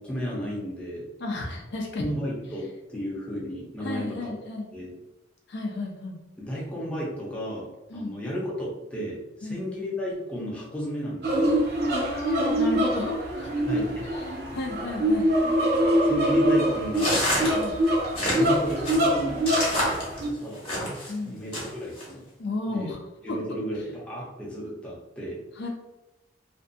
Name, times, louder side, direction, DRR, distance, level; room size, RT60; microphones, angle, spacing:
voice 1, 0.0-1.1 2.0-4.3 4.7-5.0 6.4-11.7 13.7-14.1 16.0-17.2 18.3-19.4 20.1-20.6 21.2-22.2 22.7-22.9 23.2-25.4, equal, 5° left, -6 dB, 0.6 m, -33 dB
voice 2, 1.2-2.0 3.8-4.7 5.5-6.2 7.9-8.2 9.4-9.6 11.9-13.5 14.1-14.2 14.5-15.3 17.5-17.8 21.1-21.4 22.4-23.0 23.3-23.4 25.6-25.7, left 2 dB, 65° left, 1 dB, 0.4 m, -32 dB
sound 1, 11.2-20.3, equal, 55° right, 0.6 m, -24 dB
sound 2, 16.9-21.1 21.5-22.0, left 1 dB, 30° left, 0.9 m, -28 dB
2.5 x 2.2 x 2.6 m, 1.0 s
head